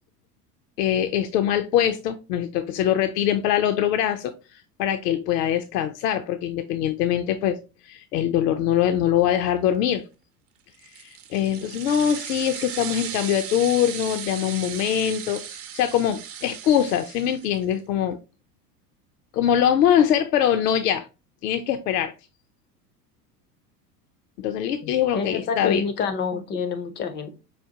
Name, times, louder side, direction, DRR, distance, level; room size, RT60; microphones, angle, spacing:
voice 1, 0.8-7.6 7.8-10.0 11.0-15.4 15.7-18.2 19.3-21.1 21.4-22.1 24.4-25.8, left 10 dB, 75° left, 0.6 m, -23 dB
sound 1, 10.7-17.7, right 8 dB, 30° right, 0.5 m, -36 dB
voice 2, 24.8-27.4, left 6 dB, 25° left, 0.4 m, -28 dB
5.0 x 2.1 x 2.7 m
hypercardioid pair, 85°, 49 cm